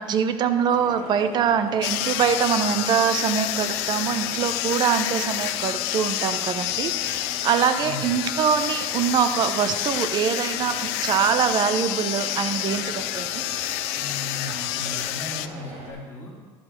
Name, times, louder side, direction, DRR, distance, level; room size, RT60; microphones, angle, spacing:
voice 1, 0.0-13.4, right 7 dB, 35° right, 10 dB, 0.6 m, -24 dB
sound 1, 0.6-15.9, right 1 dB, 60° right, 2.1 m, -40 dB
sound 2, 1.8-15.5, left 15 dB, 85° left, 0.4 m, -28 dB
voice 2, 7.8-8.1 13.9-16.3, left 2 dB, 20° left, -10 dB, 2.5 m, -36 dB
11.0 x 4.5 x 6.5 m, 1.4 s
cardioid pair, 150°, 13 cm